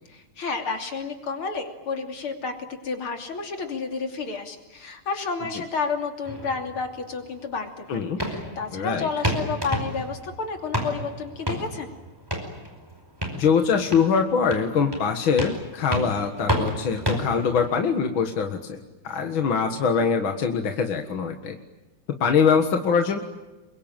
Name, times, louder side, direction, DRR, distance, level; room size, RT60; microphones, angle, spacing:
voice 1, 0.1-11.9, left 4 dB, 90° left, 4 dB, 3.8 m, -31 dB
sound 1, 6.2-17.8, equal, 10° right, 5.1 m, -32 dB
voice 2, 8.7-9.1 13.3-18.8 19.0-21.6 22.2-23.2, left 6 dB, 70° left, 5 dB, 2.5 m, -23 dB
28.0 x 23.0 x 9.0 m, 1.1 s
omnidirectional pair, 2.3 m